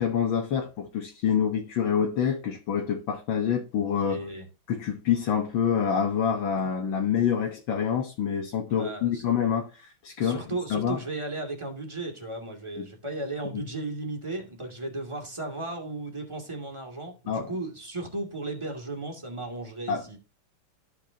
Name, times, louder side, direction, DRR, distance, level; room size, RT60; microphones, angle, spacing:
voice 1, 0.0-4.2 4.7-10.4 10.7-11.0 12.8-12.9 13.5-13.6 17.3-17.5 19.9-20.0, left 7 dB, 65° left, 1.9 m, -27 dB
voice 2, 4.0-4.4 8.7-9.3 10.2-20.2, right 2 dB, 15° right, 2.4 m, -35 dB
13.5 x 6.0 x 2.8 m
omnidirectional pair, 2.4 m